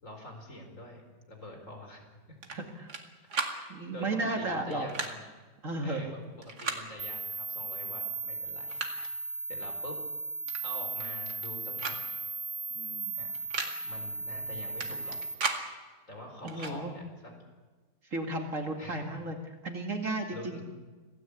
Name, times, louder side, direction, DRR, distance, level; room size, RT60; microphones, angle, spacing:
voice 1, 0.0-2.4 3.5-5.2 5.8-8.8 9.5-10.0 10.6-12.0 13.1-13.4 13.8-15.2 16.1-17.3 18.8-19.0 20.3-20.6, left 1 dB, 45° left, 3 dB, 4.9 m, -46 dB
sound 1, 2.4-3.0 3.3-3.6 4.7-5.1 6.4-6.8 7.9-8.0 8.4-9.1 10.5-10.6 10.9-11.5 11.8-12.0 12.3-12.4 13.3-13.7 14.8-15.6 16.5-16.8, right 4 dB, 65° right, 2.7 m, -35 dB
voice 2, 2.5-2.9 3.4-5.1 5.6-6.2 12.7-13.2 16.4-16.9 18.0-20.6, right 2 dB, 50° right, 3 dB, 2.6 m, -34 dB
sound 2, 7.0-15.3, right 3 dB, 85° right, 3.6 m, -37 dB
27.0 x 17.5 x 8.4 m, 1.3 s
omnidirectional pair, 1.8 m